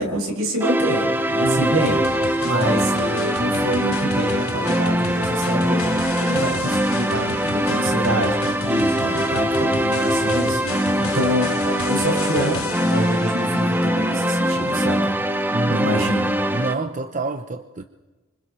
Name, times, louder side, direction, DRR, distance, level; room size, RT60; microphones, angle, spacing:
voice 1, 0.0-2.0 2.4-5.9 6.2-15.1 15.7-16.3, equal, 75° right, 6.2 m, -26 dB
sound 1, 0.6-16.7, right 1 dB, 10° right, 0.9 m, -22 dB
voice 2, 1.4-1.7 2.4-3.0 9.2-9.4 9.7-9.8 15.5-15.9 16.5-17.8, right 3 dB, 35° right, 0.8 m, -28 dB
sound 2, 1.8-15.3, left 5 dB, 75° left, 1.2 m, -33 dB
27.5 x 25.5 x 4.4 m
head